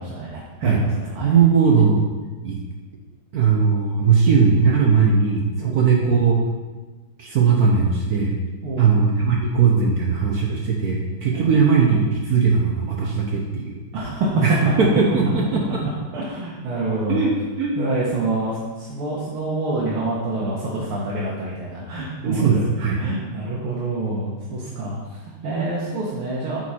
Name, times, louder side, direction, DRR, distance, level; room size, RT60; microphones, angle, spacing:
voice 1, 0.0-1.3 5.6-5.8 8.6-8.9 11.3-11.6 13.9-14.3 16.1-17.3 17.8-26.6, right 2 dB, 90° right, -6 dB, 2.1 m, -27 dB
voice 2, 1.2-2.0 2.4-2.6 3.3-6.3 7.2-8.3 8.8-13.8 14.4-15.6 17.1-17.8 22.2-23.0, right 5 dB, 60° right, -1 dB, 1.0 m, -19 dB
8.5 x 4.6 x 4.2 m, 1.3 s
omnidirectional pair, 2.3 m